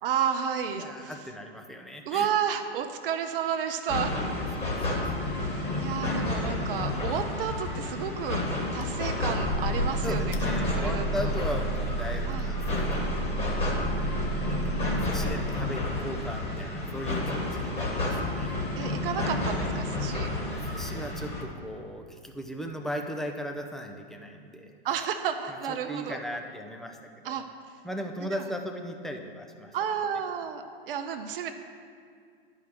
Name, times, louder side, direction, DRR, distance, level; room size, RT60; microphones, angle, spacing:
voice 1, 0.0-1.1 2.0-4.2 5.4-10.4 10.6-11.3 12.2-12.5 18.8-20.3 24.8-26.2 27.2-27.5 29.7-31.5, right 8 dB, 60° right, 6 dB, 0.7 m, -31 dB
voice 2, 0.8-2.3 4.6-4.7 4.9-5.0 10.0-14.1 15.0-18.6 20.5-24.7 25.5-27.0 27.3-27.5 27.8-29.7, equal, ahead, 3 dB, 0.5 m, -37 dB
sound 1, 3.9-21.4, left 2 dB, 20° left, 1.8 m, -31 dB
sound 2, 8.8-16.2, right 3 dB, 35° left, 0.8 m, -33 dB
10.5 x 4.9 x 5.9 m, 2.2 s
hypercardioid pair, 115°, 31 cm